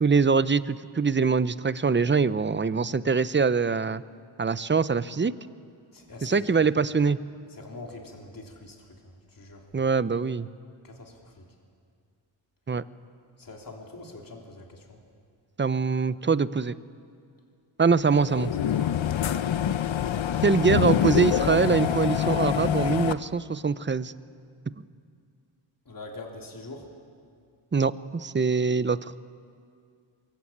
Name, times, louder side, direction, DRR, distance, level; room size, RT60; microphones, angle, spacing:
voice 1, 0.0-4.0 4.4-5.3 6.2-7.2 9.7-10.5 12.7-12.8 15.6-16.7 17.8-18.5 20.4-24.1 27.7-29.1, right 5 dB, 25° right, 15 dB, 0.7 m, -23 dB
voice 2, 5.9-6.6 7.5-9.7 10.8-11.4 13.4-15.0 18.3-19.3 20.2-20.4 25.9-26.9, left 2 dB, 40° left, 0 dB, 3.4 m, -44 dB
sound 1, 18.1-23.1, left 9 dB, 65° left, 0.9 m, -25 dB
23.5 x 22.0 x 8.7 m, 2.3 s
cardioid pair, 70°, 49 cm